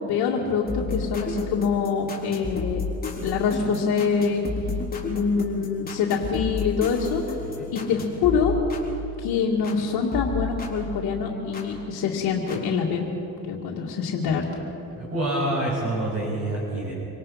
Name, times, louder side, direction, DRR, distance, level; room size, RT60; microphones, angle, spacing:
voice 1, 0.0-2.8 3.2-4.5 5.0-7.2 7.7-8.5 9.2-13.1 13.5-14.5 14.9-15.0, left 6 dB, 75° left, -5 dB, 2.4 m, -25 dB
sound 1, 0.7-9.8 10.1-11.7 12.5-12.6, left 3 dB, 25° left, 3.9 m, -32 dB
voice 2, 15.0-16.9, right 1 dB, 40° right, -5 dB, 6.2 m, -27 dB
26.0 x 18.0 x 5.9 m, 3.0 s
cardioid pair, 100°, 37 cm